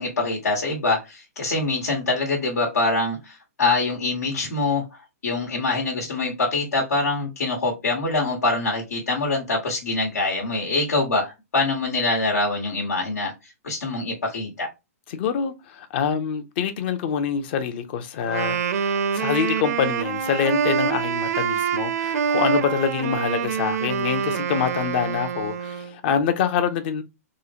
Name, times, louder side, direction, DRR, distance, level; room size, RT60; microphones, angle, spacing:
voice 1, 0.0-4.8 5.2-14.7, left 3 dB, 85° left, 1.3 m, -24 dB
voice 2, 15.1-27.0, left 7 dB, 40° left, 0.6 m, -25 dB
Wind instrument woodwind instrument, 18.2-26.0, right 7 dB, 75° right, 0.5 m, -25 dB
3.7 x 2.1 x 2.7 m
hypercardioid pair, 150°, 9 cm